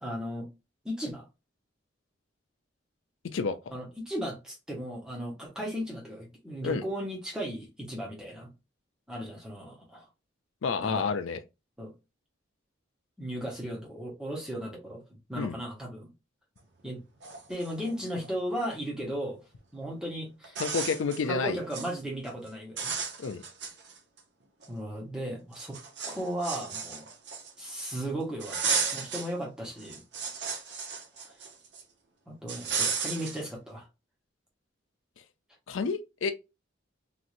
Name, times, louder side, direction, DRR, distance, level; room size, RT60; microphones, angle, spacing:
voice 1, 0.0-0.5 0.8-1.3 3.7-8.5 9.1-10.1 10.8-11.1 11.8-11.9 13.2-15.0 15.3-16.1 16.8-17.0 17.5-19.4 19.7-20.6 21.3-22.9 24.7-25.8 26.1-27.1 27.6-30.0 32.3-33.8, equal, 5° right, 0.9 m, -36 dB
voice 2, 10.6-11.4 15.4-15.5 20.6-21.6 23.2-23.4 35.7-36.3, left 5 dB, 80° left, 0.4 m, -29 dB
sound 1, 16.9-17.0 17.2-18.3 19.8-19.9 20.4-21.2 21.6-21.9 22.3-22.5 22.8-24.2 24.6-24.7 25.5-27.7 28.4-29.3 29.7-31.8 32.5-33.4, right 5 dB, 60° right, 0.7 m, -34 dB
3.0 x 2.6 x 2.5 m
head